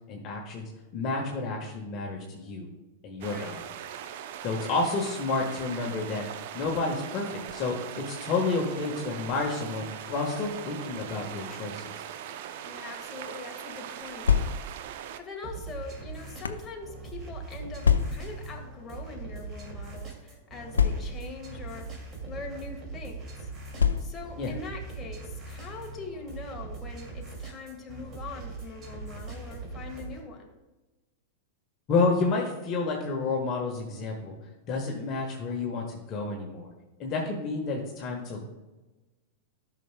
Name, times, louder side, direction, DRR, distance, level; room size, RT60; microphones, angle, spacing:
voice 1, 0.1-2.7 3.0-3.6 4.4-6.2 6.5-11.9 24.4-24.5 31.9-34.4 34.7-36.7 37.0-38.4, left 3 dB, 40° left, 0 dB, 1.4 m, -30 dB
voice 2, 3.2-3.5 12.6-14.3 15.2-23.5 24.0-30.5, left 3 dB, 20° left, 0 dB, 1.6 m, -42 dB
sound 1, 3.2-15.2, right 9 dB, 60° right, 0.6 m, -40 dB
sound 2, 14.0-14.9 15.7-16.7 17.8-18.4 19.3-19.5 19.7-19.8 20.7-21.4 22.3-22.5 23.8-24.4, left 7 dB, 90° left, 0.5 m, -26 dB
sound 3, 15.4-30.2, right 4 dB, 35° right, 2.4 m, -41 dB
12.5 x 6.0 x 2.2 m, 1.1 s
hypercardioid pair, 100°, 0 cm